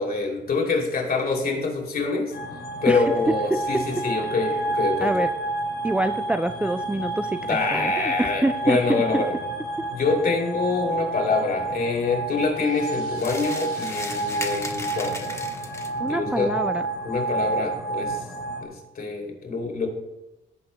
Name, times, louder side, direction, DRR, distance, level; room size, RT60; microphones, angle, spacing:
voice 1, 0.0-2.3 2.8-5.3 7.5-9.3 9.9-15.3 16.0-16.5 17.0-18.2 18.6-19.9, left 4 dB, 50° left, 1 dB, 2.8 m, -25 dB
sound 1, 2.3-18.6, right 2 dB, 75° left, 2.9 m, -29 dB
voice 2, 3.5-3.8 5.0-5.3 5.8-7.4 7.7-8.8 9.1-9.2 16.0-16.9, right 1 dB, 5° right, 8 dB, 0.3 m, -25 dB
sound 2, 13.2-16.1, left 2 dB, 15° left, 1.1 m, -36 dB
17.5 x 8.8 x 2.2 m, 0.99 s
cardioid pair, 90°, 20 cm